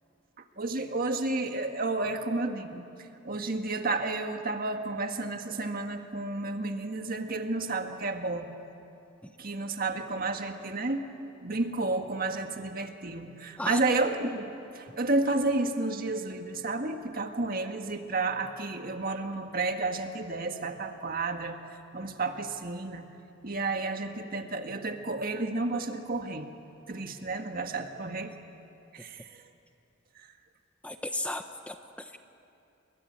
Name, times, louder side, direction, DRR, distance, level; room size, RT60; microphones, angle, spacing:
voice 1, 0.6-2.9 3.2-8.5 9.4-11.1 11.4-14.5 14.7-21.6 21.9-23.1 23.4-26.5 26.9-28.4 28.9-29.2, right 2 dB, 45° right, 5 dB, 1.7 m, -31 dB
voice 2, 30.8-32.2, left 1 dB, 5° left, 7 dB, 0.9 m, -36 dB
30.0 x 22.5 x 8.8 m, 2.7 s
head